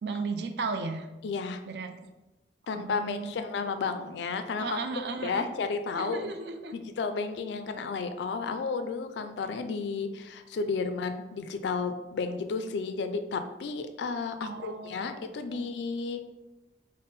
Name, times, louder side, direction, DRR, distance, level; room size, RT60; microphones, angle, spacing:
voice 1, 0.0-1.1 1.7-2.0 2.7-3.3 4.6-5.5 5.9-6.8 14.4-15.1 15.5-15.6, right 4 dB, 60° right, 7 dB, 0.4 m, -35 dB
voice 2, 1.2-1.6 2.7-4.8 5.2-6.3 6.7-16.3, left 4 dB, 70° left, 9 dB, 0.3 m, -32 dB
4.0 x 2.0 x 3.5 m, 1.0 s
head